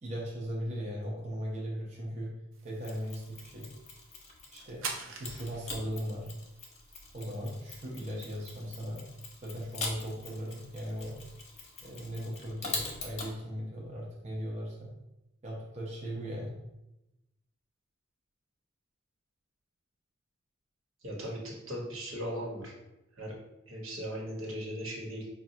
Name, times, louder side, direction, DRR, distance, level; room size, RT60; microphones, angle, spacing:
voice 1, 0.0-2.3 2.6-3.7 4.5-6.3 7.1-9.0 9.4-11.2 11.8-14.9 15.4-16.5, equal, 35° right, -4 dB, 0.7 m, -38 dB
sound 1, 2.5-12.0, right 5 dB, 75° right, 0.5 m, -49 dB
Mechanisms, 2.8-4.7 5.2-13.3, left 3 dB, 35° left, 0.7 m, -43 dB
voice 2, 21.0-22.7 23.2-23.3 23.7-25.3, equal, 90° right, -2 dB, 1.2 m, -38 dB
5.1 x 2.3 x 2.7 m, 0.93 s
head